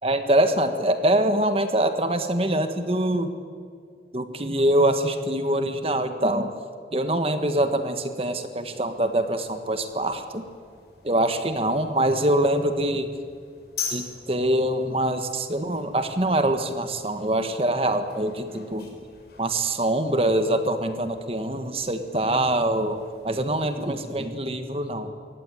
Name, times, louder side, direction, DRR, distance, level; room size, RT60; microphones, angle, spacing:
voice 1, 0.0-3.3 4.1-6.5 6.9-10.4 11.0-13.1 13.9-18.9 19.4-25.1, right 1 dB, 35° right, 8 dB, 1.5 m, -24 dB
sound 1, 8.6-24.3, left 6 dB, 65° left, 5.2 m, -44 dB
24.0 x 17.0 x 9.8 m, 2.2 s
head